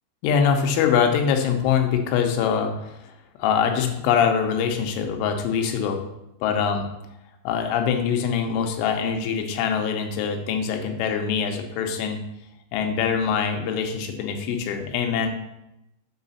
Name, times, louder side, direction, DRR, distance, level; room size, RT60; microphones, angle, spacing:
voice 1, 0.2-2.7 3.0-3.1 3.4-6.0 6.4-6.9 7.4-12.2 12.7-15.3, left 7 dB, 90° left, 4 dB, 3.3 m, -23 dB
7.1 x 5.7 x 4.1 m, 0.87 s
omnidirectional pair, 5.4 m